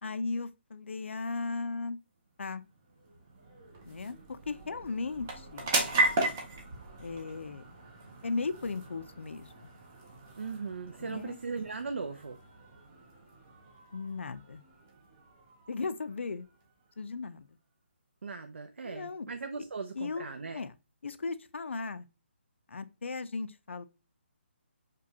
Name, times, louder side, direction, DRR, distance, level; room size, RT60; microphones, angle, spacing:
voice 1, 0.0-2.0 2.4-2.6 3.9-5.7 7.0-7.6 8.2-9.7 11.0-11.4 13.9-14.6 15.7-16.5 17.0-17.5 18.8-19.3 19.9-20.8 21.0-22.1 22.7-23.8, left 4 dB, 75° left, 0.4 m, -36 dB
sound 1, 2.3-17.1, right 2 dB, 10° right, 0.4 m, -37 dB
voice 2, 10.4-12.4 18.2-20.6, right 4 dB, 70° right, 0.5 m, -38 dB
5.0 x 2.3 x 2.7 m
hypercardioid pair, 180°, 7 cm